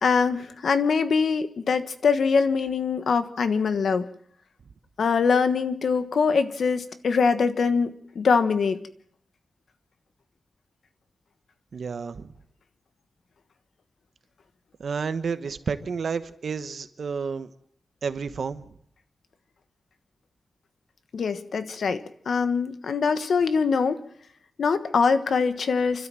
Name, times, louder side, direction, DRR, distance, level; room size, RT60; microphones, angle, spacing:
voice 1, 0.0-4.1 5.0-8.8 21.1-24.0 24.6-26.1, left 5 dB, 75° left, 10 dB, 1.3 m, -23 dB
voice 2, 11.7-12.3 14.8-17.5 18.0-18.7, right 5 dB, 70° right, 11 dB, 1.1 m, -30 dB
29.0 x 13.0 x 7.6 m, 0.68 s
wide cardioid pair, 125°, 0 cm